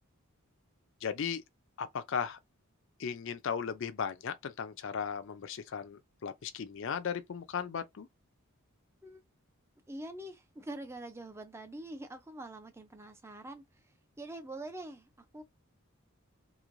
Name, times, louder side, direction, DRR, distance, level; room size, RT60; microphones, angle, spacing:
voice 1, 1.0-1.4 1.8-2.4 3.0-8.1, left 7 dB, 55° left, 0.4 m, -36 dB
voice 2, 9.9-13.6 14.2-15.4, right 1 dB, 10° right, 0.4 m, -44 dB
3.1 x 2.6 x 2.5 m
head